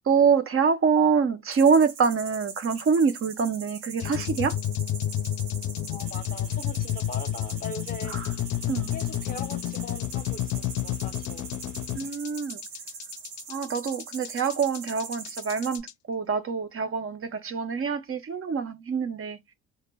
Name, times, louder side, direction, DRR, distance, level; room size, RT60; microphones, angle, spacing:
voice 1, 0.1-4.6 8.1-8.3 8.7-8.9 11.9-12.6 13.5-19.4, right 6 dB, 35° right, 0.6 m, -25 dB
sound 1, 1.5-15.8, right 5 dB, 85° right, 0.8 m, -42 dB
sound 2, 4.0-15.9, left 12 dB, 50° left, 0.5 m, -31 dB
voice 2, 5.9-8.1 8.9-11.5, left 4 dB, 20° left, 0.8 m, -40 dB
2.2 x 2.1 x 3.2 m
hypercardioid pair, 60°, 39 cm